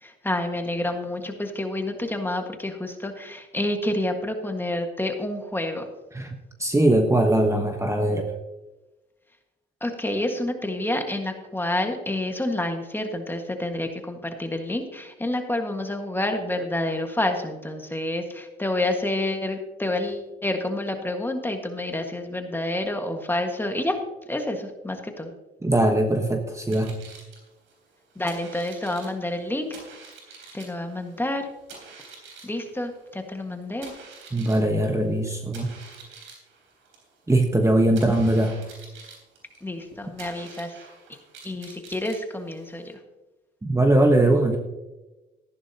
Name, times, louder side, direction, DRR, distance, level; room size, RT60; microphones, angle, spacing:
voice 1, 0.0-5.9 9.8-24.0 24.3-25.3 28.1-29.8 30.5-31.5 32.4-33.9 39.6-40.7 41.4-43.0, left 1 dB, 10° left, 4 dB, 1.6 m, -28 dB
voice 2, 6.1-8.3 25.6-27.0 34.3-35.7 37.3-38.6 43.6-44.6, right 1 dB, 15° right, 4 dB, 1.2 m, -21 dB
sound 1, 26.5-42.9, right 4 dB, 90° right, 3.6 m, -48 dB
14.0 x 11.0 x 2.9 m, 1.1 s
cardioid pair, 90°, 20 cm